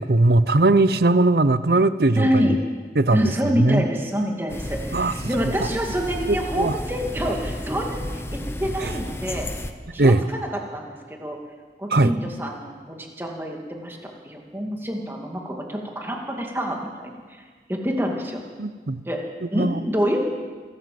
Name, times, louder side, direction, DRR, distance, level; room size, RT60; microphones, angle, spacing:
voice 1, 0.0-2.5 2.9-3.9 4.9-5.1 5.6-5.7 6.3-6.7 8.8-8.9 10.0-10.2 11.9-12.1 18.6-19.0 19.5-19.8, right 2 dB, 60° right, 14 dB, 0.8 m, -19 dB
voice 2, 2.2-2.6 3.1-9.5 9.9-10.9 11.2-11.4 11.8-17.4 17.7-18.4 19.1-19.2 19.5-20.3, equal, 15° right, 1 dB, 2.3 m, -27 dB
sound 1, 4.5-9.7, left 1 dB, 15° left, 0.9 m, -32 dB
27.5 x 12.5 x 7.8 m, 1.5 s
head